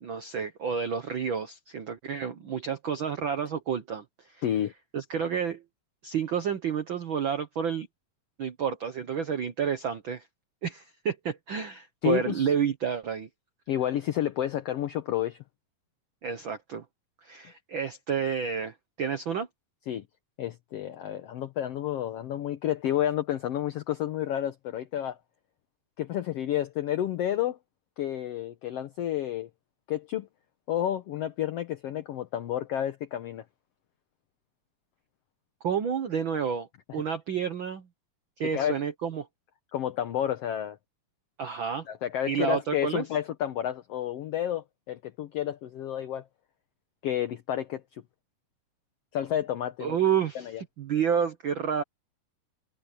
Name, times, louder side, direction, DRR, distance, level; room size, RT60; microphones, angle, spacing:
voice 1, 0.0-4.4 4.9-5.6 6.0-7.9 8.4-10.3 10.6-13.3 16.2-16.8 17.2-19.5 35.6-37.9 38.4-39.3 41.4-41.9 42.3-43.0 49.8-51.8, right 7 dB, 90° right, 1.0 m, -30 dB
voice 2, 4.4-4.7 12.0-12.5 13.7-15.4 19.9-20.0 20.4-25.2 26.0-27.6 28.0-29.5 29.9-30.3 30.7-33.4 38.5-38.8 39.7-40.8 41.9-46.3 47.0-48.0 49.1-50.0 50.5-50.6, left 11 dB, 70° left, 1.5 m, -30 dB
omnidirectional pair, 3.9 m